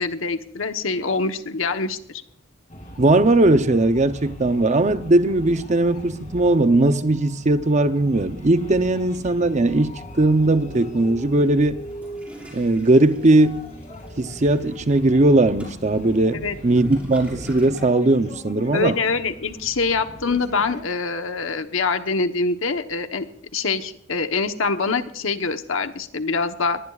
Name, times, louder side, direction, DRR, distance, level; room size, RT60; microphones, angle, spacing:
voice 1, 0.0-2.2 16.3-16.6 18.7-23.3 23.5-26.8, left 4 dB, 80° left, 1.1 m, -24 dB
sound 1, 2.7-20.8, equal, 35° left, 2.7 m, -40 dB
voice 2, 3.0-11.8 12.5-13.7 14.2-18.9, right 2 dB, 35° right, 0.7 m, -19 dB
Toilet flush, 11.8-18.0, right 1 dB, 5° right, 5.4 m, -44 dB
21.5 x 19.5 x 2.4 m
head